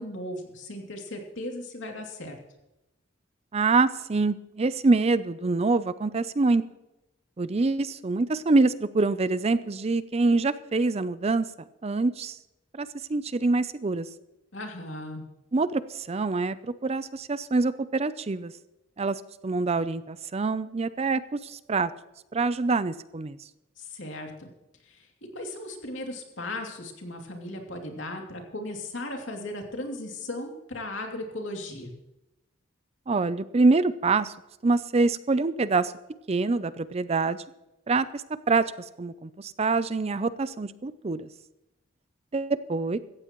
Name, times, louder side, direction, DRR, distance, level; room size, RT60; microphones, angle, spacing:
voice 1, 0.0-2.4 14.5-15.3 23.8-24.5 24.8-25.1 25.3-31.9, left 1 dB, 65° left, 2 dB, 2.8 m, -37 dB
voice 2, 3.5-6.6 7.4-11.5 11.8-12.4 12.7-14.1 15.5-18.5 19.0-21.9 22.3-23.4 33.1-34.3 34.6-35.9 36.3-37.4 37.9-38.7 39.0-41.3 42.3-43.0, right 3 dB, 30° right, 15 dB, 0.5 m, -25 dB
16.5 x 14.5 x 3.1 m, 0.93 s
head